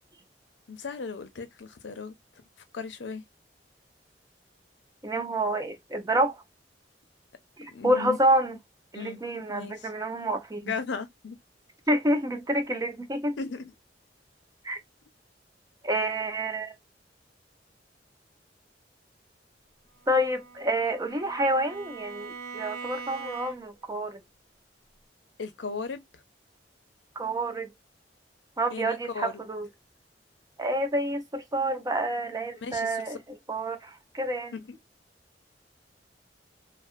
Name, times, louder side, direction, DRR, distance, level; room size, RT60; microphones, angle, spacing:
voice 1, 0.7-2.1 2.7-3.2 7.7-8.2 8.9-9.2 9.5-9.9 10.6-11.4 13.4-13.7 25.4-26.2 28.7-29.3 32.6-33.2 34.5-34.8, left 5 dB, 85° left, 0.6 m, -36 dB
voice 2, 5.0-6.4 7.6-8.6 8.9-10.7 11.9-13.4 14.6-14.8 15.8-16.7 20.1-24.2 27.2-27.7 28.6-29.7 30.6-34.6, right 1 dB, 20° right, 0.5 m, -28 dB
Bowed string instrument, 20.0-23.9, right 5 dB, 60° right, 1.0 m, -42 dB
2.5 x 2.4 x 2.5 m
head